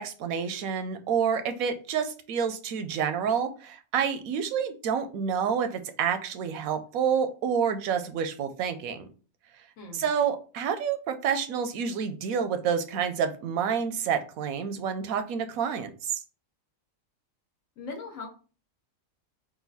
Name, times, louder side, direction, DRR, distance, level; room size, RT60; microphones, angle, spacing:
voice 1, 0.0-9.1 9.9-16.1, right 7 dB, 85° right, 9 dB, 1.1 m, -28 dB
voice 2, 9.8-10.1 17.8-18.3, left 3 dB, 70° left, 2 dB, 1.4 m, -39 dB
4.0 x 2.5 x 4.0 m, 0.37 s
omnidirectional pair, 1.4 m